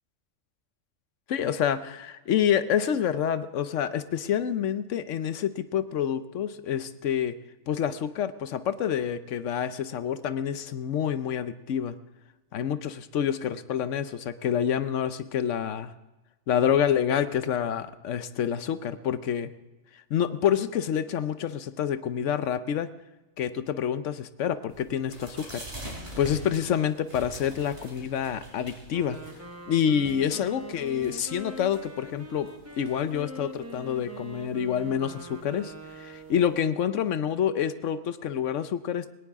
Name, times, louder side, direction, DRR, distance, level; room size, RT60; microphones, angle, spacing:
voice 1, 1.3-7.4 7.7-11.9 12.5-15.9 16.5-19.5 20.1-22.9 23.4-25.7 26.2-29.2 29.7-32.5 32.8-39.1, left 9 dB, 70° left, 13 dB, 1.0 m, -27 dB
sound 1, 24.7-36.6, right 1 dB, 40° right, 4.1 m, -46 dB
Wind instrument woodwind instrument, 28.9-36.8, right 1 dB, 15° right, 0.8 m, -43 dB
18.5 x 18.0 x 3.6 m, 1.1 s
omnidirectional pair, 1.4 m